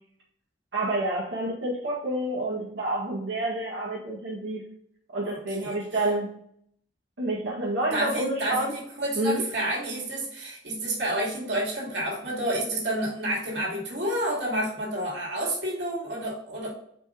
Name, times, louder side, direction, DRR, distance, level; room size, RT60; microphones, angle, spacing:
voice 1, 0.7-4.6 5.1-6.3 7.2-8.7 9.2-9.4, right 1 dB, 90° right, -7 dB, 1.9 m, -28 dB
voice 2, 5.2-5.8 7.9-16.7, right 1 dB, 65° right, -3 dB, 2.6 m, -30 dB
5.1 x 4.9 x 3.8 m, 0.68 s
head